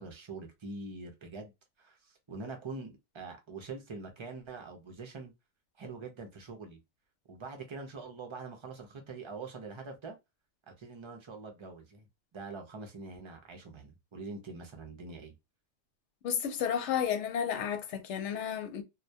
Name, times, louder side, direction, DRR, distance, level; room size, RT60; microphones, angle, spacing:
voice 1, 0.0-1.5 1.8-5.3 5.8-6.8 7.3-10.2 10.8-12.0 12.3-15.3, right 3 dB, 40° right, 0.4 m, -44 dB
voice 2, 16.2-18.8, left 8 dB, 80° left, 0.9 m, -32 dB
2.2 x 2.2 x 2.6 m
omnidirectional pair, 1.2 m